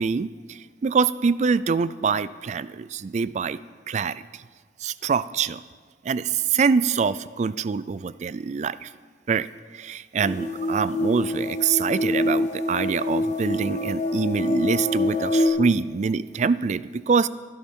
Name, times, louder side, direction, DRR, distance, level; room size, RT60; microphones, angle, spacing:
voice 1, 0.0-3.6 3.9-4.2 4.8-5.6 6.0-8.9 9.3-9.5 9.7-17.3, right 5 dB, 40° right, 17 dB, 0.3 m, -25 dB
sound 1, 10.2-15.5, left 1 dB, 40° left, 1.1 m, -26 dB
20.5 x 11.0 x 3.7 m, 1.5 s
head